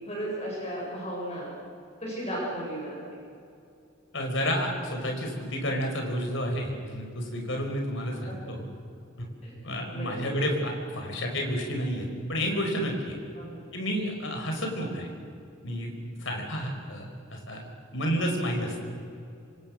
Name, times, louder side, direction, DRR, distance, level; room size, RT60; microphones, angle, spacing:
voice 1, 0.0-1.5 2.0-3.0 8.2-8.4 9.4-9.5 9.9-10.3 13.3-13.6, right 1 dB, 30° left, -4 dB, 7.6 m, -35 dB
voice 2, 4.1-8.7 9.2-9.3 9.6-13.2 13.7-15.1 15.6-15.9 16.2-17.6 17.9-18.8, equal, 60° left, 2 dB, 5.2 m, -30 dB
26.5 x 25.5 x 6.6 m, 2.5 s
head